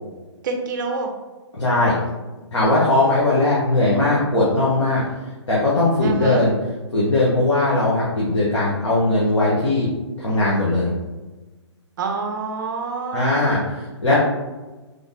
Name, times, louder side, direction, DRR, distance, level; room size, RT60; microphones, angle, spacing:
voice 1, 0.4-1.1 6.0-6.4 12.0-13.6, right 4 dB, 45° right, 3 dB, 0.5 m, -27 dB
voice 2, 1.5-1.9 2.5-5.0 5.5-6.5 6.9-9.9 10.2-10.9 13.1-14.2, left 2 dB, 80° left, -6 dB, 1.0 m, -19 dB
3.4 x 2.1 x 3.7 m, 1.2 s
hypercardioid pair, 135°, 15 cm